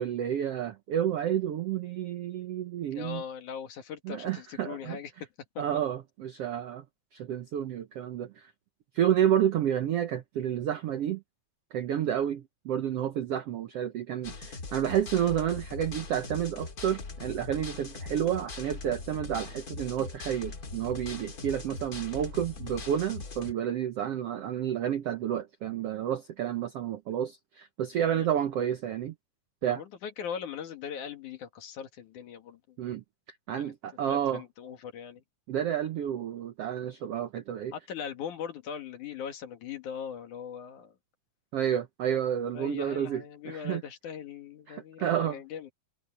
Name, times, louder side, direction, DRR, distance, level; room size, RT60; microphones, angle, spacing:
voice 1, 0.0-3.2 4.0-5.0 5.6-6.8 7.1-8.5 8.9-11.2 11.7-29.1 29.6-29.8 32.8-33.0 33.5-34.4 35.5-37.7 41.5-43.8 44.7-45.4, right 10 dB, 70° right, 1.4 m, -30 dB
voice 2, 2.9-5.1 5.5-5.6 28.0-28.3 29.6-32.8 33.6-33.7 34.1-35.2 37.7-40.9 42.1-42.2 42.5-45.7, left 7 dB, 65° left, 3.2 m, -40 dB
sound 1, 14.2-23.5, left 3 dB, 30° left, 2.1 m, -41 dB
omnidirectional pair, 3.9 m